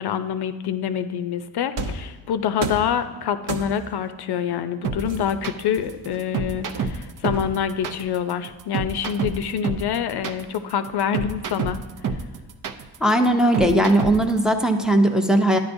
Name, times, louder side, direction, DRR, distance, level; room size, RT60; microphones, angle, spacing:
voice 1, 0.0-11.8, left 8 dB, 55° left, 11 dB, 0.6 m, -26 dB
sound 1, 1.8-2.1 2.6-3.0 3.5-4.0 5.0-6.2 6.7-7.8, right 2 dB, 65° right, 0.9 m, -31 dB
sound 2, 4.8-14.4, right 5 dB, 45° right, 0.6 m, -28 dB
voice 2, 13.0-15.6, right 1 dB, ahead, 3 dB, 0.6 m, -18 dB
12.0 x 9.7 x 2.6 m, 1.2 s
cardioid pair, 100°, 48 cm